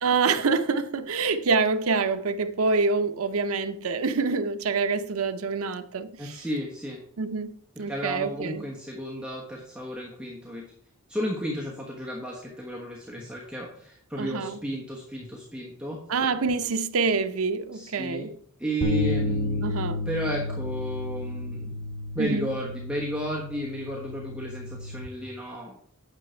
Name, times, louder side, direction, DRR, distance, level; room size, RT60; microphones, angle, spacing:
voice 1, 0.0-6.4 7.2-8.7 14.2-14.6 16.1-18.4 19.2-20.1 22.2-22.5, right 4 dB, 75° right, 0.6 m, -26 dB
voice 2, 6.2-7.0 7.9-10.6 11.1-16.0 17.7-18.3 18.6-19.8 20.1-21.7 22.1-25.8, equal, 5° right, 1.1 m, -33 dB
sound 1, 18.8-25.1, left 2 dB, 80° left, 1.1 m, -31 dB
9.1 x 6.4 x 4.4 m
head